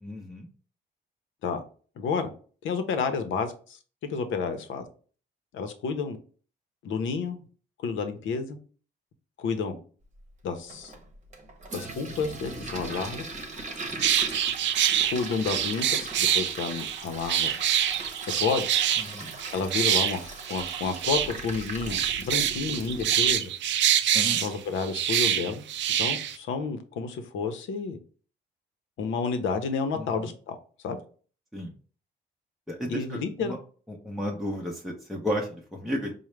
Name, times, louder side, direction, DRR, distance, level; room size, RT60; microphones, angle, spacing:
voice 1, 0.0-0.5 13.9-14.0 19.0-19.3 24.1-24.4 29.9-30.3 31.5-31.7 32.7-33.6 33.9-36.1, equal, ahead, 0.7 m, -33 dB
voice 2, 2.0-2.3 2.6-4.9 5.5-6.2 6.8-7.4 7.8-8.6 9.4-9.8 10.4-10.9 11.7-13.3 15.0-17.5 18.4-18.7 19.5-23.5 24.4-25.6 26.0-28.0 29.0-30.6 30.8-31.0 32.9-33.5, left 5 dB, 75° left, 0.7 m, -30 dB
Toilet flush, 10.7-23.4, right 2 dB, 35° right, 0.9 m, -39 dB
sound 1, 14.0-26.4, right 10 dB, 65° right, 0.4 m, -26 dB
4.6 x 2.1 x 3.2 m
cardioid pair, 90°, 20 cm